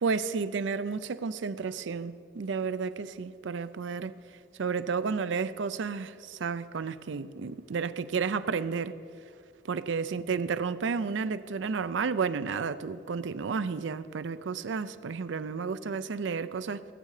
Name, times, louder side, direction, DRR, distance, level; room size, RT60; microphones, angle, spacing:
voice 1, 0.0-4.1 4.6-9.0 9.7-16.8, right 5 dB, 80° right, 0.5 m, -32 dB
20.0 x 7.7 x 4.9 m
head